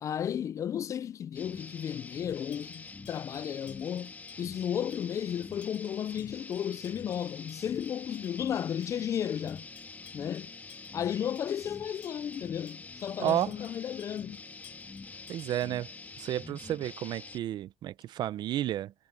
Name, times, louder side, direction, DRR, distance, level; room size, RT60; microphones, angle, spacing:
voice 1, 0.0-9.7 10.1-10.5 10.9-14.4, left 9 dB, 40° left, 0.4 m, -34 dB
sound 1, 1.3-17.4, left 4 dB, 20° left, 3.1 m, -46 dB
sound 2, 2.3-16.0, left 14 dB, 75° left, 5.9 m, -61 dB
voice 2, 13.2-13.5 15.3-15.9 16.2-18.9, right 12 dB, 60° right, 0.7 m, -31 dB
cardioid pair, 155°, 8 cm